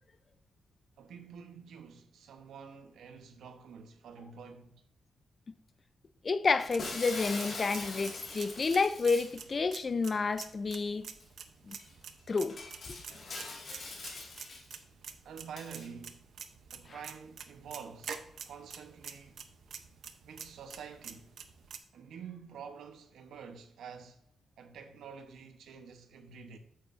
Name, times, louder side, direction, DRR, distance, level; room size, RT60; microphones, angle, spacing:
voice 1, 1.0-4.8 15.2-16.2 16.7-19.4 20.2-21.3 21.9-24.2 24.6-26.6, right 6 dB, 90° right, 0.9 m, -48 dB
voice 2, 6.2-11.1 11.7-11.8 12.3-12.6 12.9-13.0, left 4 dB, 30° left, 0.4 m, -30 dB
sound 1, 6.5-21.8, right 7 dB, 60° right, 0.6 m, -48 dB
Shatter, 6.8-9.4 11.2-11.3 11.8-11.9 12.5-14.8 15.6-15.9, left 3 dB, 45° left, 1.9 m, -42 dB
8.6 x 7.3 x 2.5 m
wide cardioid pair, 155°, 0 cm